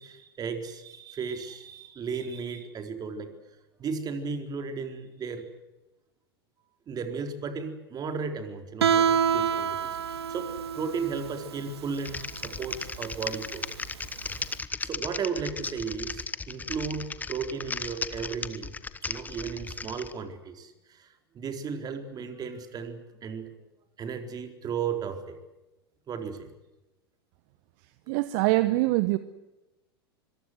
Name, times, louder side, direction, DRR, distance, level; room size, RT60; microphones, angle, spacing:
voice 1, 0.0-3.3 3.8-5.5 6.9-10.5 10.7-13.7 14.8-18.7 19.0-23.5 24.0-25.4 26.1-26.5, right 5 dB, 30° right, 6 dB, 4.2 m, -35 dB
Guitar, 8.8-14.5, right 8 dB, 75° right, 1.1 m, -28 dB
Typing, 11.9-20.1, left 4 dB, 10° left, 1.2 m, -36 dB
voice 2, 28.1-29.2, right 19 dB, 55° right, 13 dB, 1.2 m, -23 dB
25.0 x 23.5 x 8.0 m, 1.0 s
hypercardioid pair, 95°, 13 cm